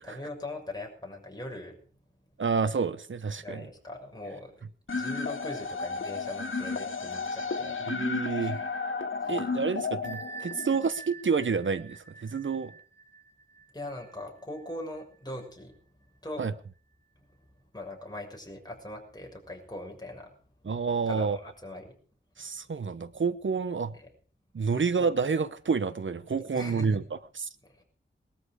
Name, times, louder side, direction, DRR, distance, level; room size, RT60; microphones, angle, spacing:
voice 1, 0.0-1.8 3.4-4.5 4.9-7.8 8.4-8.5 9.2-9.4 13.7-15.8 16.2-16.5 17.2-17.3 17.7-20.3 21.1-21.9 23.9-24.1 24.7-24.9 26.5-27.0 27.6-27.8, left 1 dB, 20° left, 1 dB, 6.7 m, -41 dB
voice 2, 2.4-3.7 7.9-8.6 9.3-12.7 16.4-16.5 20.6-21.4 22.4-23.9 24.5-27.5, right 5 dB, 75° right, 14 dB, 0.9 m, -29 dB
sound 1, 4.9-10.9, left 4 dB, 85° left, 1.7 m, -33 dB
Bell, 10.0-15.5, right 5 dB, 55° right, 2.1 m, -47 dB
21.0 x 13.0 x 4.9 m, 0.43 s
wide cardioid pair, 70°, 20 cm